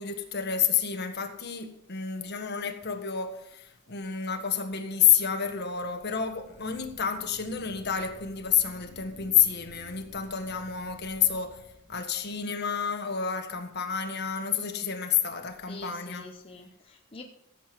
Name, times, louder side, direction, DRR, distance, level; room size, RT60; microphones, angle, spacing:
voice 1, 0.0-11.6 11.9-16.3, left 8 dB, 50° left, 6 dB, 1.5 m, -29 dB
sound 1, 5.6-12.6, equal, 35° right, 3.3 m, -53 dB
voice 2, 15.7-17.2, left 2 dB, 25° left, 2 dB, 0.8 m, -45 dB
15.5 x 7.8 x 5.3 m, 0.79 s
head